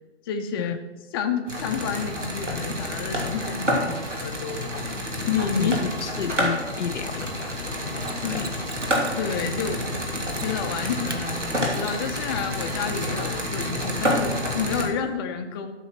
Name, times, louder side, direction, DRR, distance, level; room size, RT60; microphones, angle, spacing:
voice 1, 0.3-0.8 1.1-4.7 5.3-5.8 8.2-8.6 9.1-9.9 10.4-15.7, left 6 dB, 20° left, 0.7 m, -29 dB
sound 1, 1.5-14.9, equal, 85° right, 3.0 m, -28 dB
voice 2, 5.6-7.6 8.1-8.5 14.8-14.9, left 7 dB, 75° left, 0.5 m, -32 dB
Mechanisms, 8.0-9.3 10.3-10.7 11.1-11.2 14.0-14.1, right 4 dB, 20° right, 0.4 m, -41 dB
13.0 x 6.3 x 6.0 m
figure-of-eight pair, 130°, 35 cm